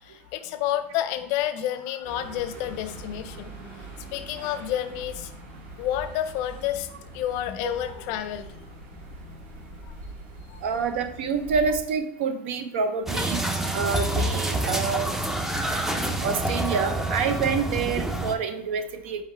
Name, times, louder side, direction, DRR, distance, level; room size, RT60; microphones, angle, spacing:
voice 1, 0.0-3.5 4.1-5.3 5.8-6.9 7.1-8.5 9.9-10.0 10.5-10.6, left 12 dB, 55° left, 10 dB, 0.4 m, -29 dB
sound 1, 2.0-11.8, right 1 dB, 50° right, 1.7 m, -43 dB
voice 2, 10.6-13.5 13.7-15.1 16.2-19.2, right 5 dB, 85° right, 8 dB, 0.6 m, -27 dB
sound 2, 13.1-18.3, right 1 dB, 5° right, 0.4 m, -27 dB
4.5 x 3.6 x 3.2 m, 0.75 s
supercardioid pair, 140°, 6 cm